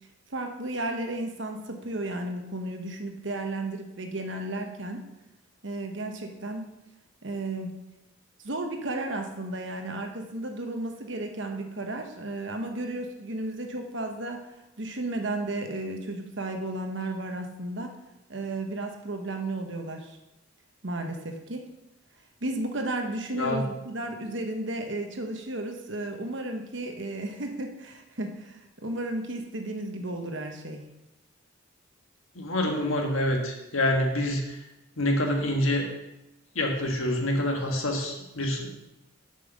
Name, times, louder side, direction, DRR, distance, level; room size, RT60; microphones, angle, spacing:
voice 1, 0.3-5.0 5.6-6.7 7.2-7.8 8.4-14.5 14.8-17.9 18.3-20.2 20.8-21.7 22.4-30.8, right 2 dB, 60° right, 4 dB, 1.1 m, -33 dB
voice 2, 32.4-34.6 35.0-35.9 36.6-38.7, left 1 dB, 75° left, 2 dB, 1.6 m, -26 dB
7.6 x 5.5 x 6.5 m, 0.94 s
head